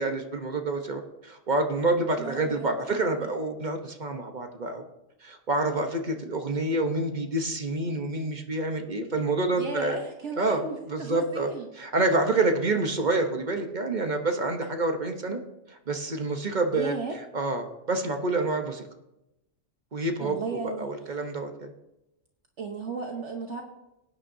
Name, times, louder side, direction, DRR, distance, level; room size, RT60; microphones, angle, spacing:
voice 1, 0.0-4.8 5.2-10.0 10.4-10.6 10.9-11.5 11.8-15.4 15.7-16.9 17.3-18.8 19.9-20.4 20.6-21.7, right 2 dB, 35° right, 5 dB, 1.0 m, -27 dB
voice 2, 2.2-3.3 9.5-11.7 16.7-17.2 20.2-20.9 22.6-23.6, right 4 dB, 60° right, 3 dB, 1.3 m, -35 dB
18.5 x 9.6 x 2.7 m, 0.92 s
omnidirectional pair, 1.4 m